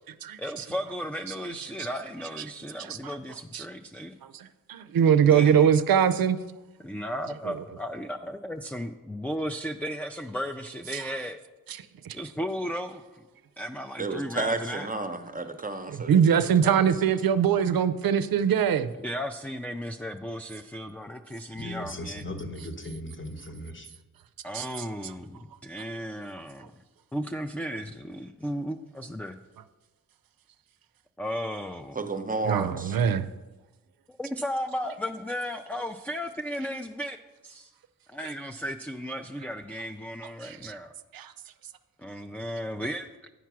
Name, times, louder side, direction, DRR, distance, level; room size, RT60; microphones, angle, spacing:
voice 1, 0.4-4.2 5.2-5.7 6.8-11.4 12.1-13.2 13.6-14.9 19.0-22.2 24.4-26.7 27.1-29.4 31.2-32.0 34.1-37.2 37.4-37.7 38.1-40.9 42.0-43.1, equal, 5° left, 0.3 m, -35 dB
voice 2, 4.3-6.4 7.5-7.6 10.9-11.0 12.1-12.2 15.9-18.9 24.5-24.7 32.4-33.3 40.4-40.7 41.1-41.3, right 8 dB, 85° right, 0.5 m, -22 dB
voice 3, 14.0-16.8 31.9-33.0, right 3 dB, 25° right, 0.7 m, -32 dB
voice 4, 21.5-23.9, left 1 dB, 35° left, 1.0 m, -38 dB
9.3 x 4.6 x 6.0 m
wide cardioid pair, 70°, 34 cm